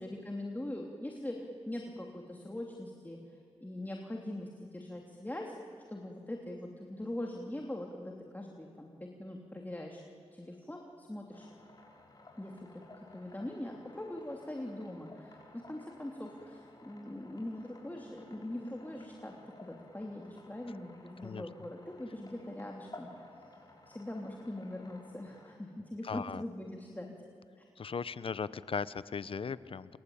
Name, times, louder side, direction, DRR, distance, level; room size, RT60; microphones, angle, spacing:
voice 1, 0.0-5.5 5.9-10.0 10.3-11.5 12.4-12.8 13.1-19.3 19.6-23.3 23.9-27.2 27.6-27.7, left 1 dB, 15° left, 0 dB, 3.1 m, -42 dB
sound 1, 11.3-25.5, left 2 dB, 40° left, 6.8 m, -56 dB
voice 2, 26.0-26.4 27.8-30.0, left 5 dB, 60° left, 17 dB, 0.8 m, -37 dB
27.0 x 22.0 x 8.8 m, 2.5 s
cardioid pair, 50°, 11 cm